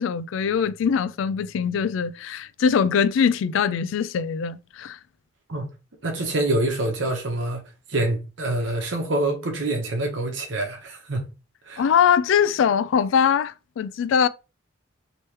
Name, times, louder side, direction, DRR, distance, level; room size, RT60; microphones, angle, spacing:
voice 1, 0.0-5.0 11.8-14.3, left 7 dB, 80° left, 0.3 m, -22 dB
voice 2, 6.0-7.6 7.9-11.3 11.7-11.8, right 2 dB, 70° right, 1.0 m, -26 dB
3.1 x 3.1 x 3.2 m
head